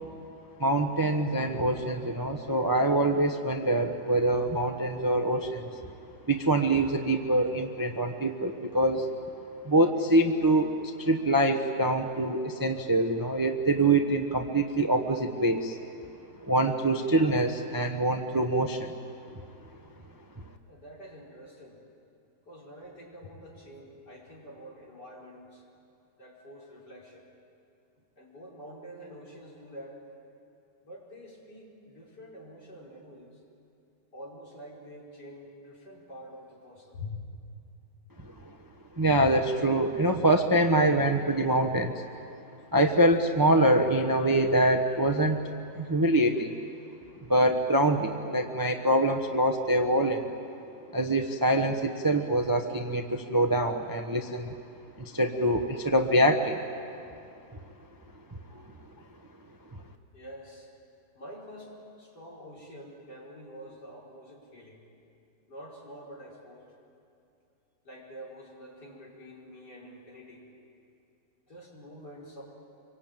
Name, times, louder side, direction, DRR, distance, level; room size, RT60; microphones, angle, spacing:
voice 1, 0.6-5.7 6.3-9.1 9.6-15.8 16.5-18.9 38.2-38.5 38.9-42.0 42.7-45.4 45.7-46.5 47.3-50.3 50.9-54.5 55.0-56.6 58.3-58.4, right 1 dB, 15° right, 5 dB, 0.9 m, -25 dB
voice 2, 20.7-21.8 22.4-25.6 26.2-27.3 28.2-30.0 30.8-33.4 34.1-37.2 58.5-58.8 60.1-60.7 61.2-61.7 62.0-64.8 65.5-66.7 67.8-70.5 71.5-72.4, equal, 60° left, -4 dB, 5.5 m, -46 dB
25.5 x 24.0 x 9.1 m, 2.6 s
omnidirectional pair, 2.0 m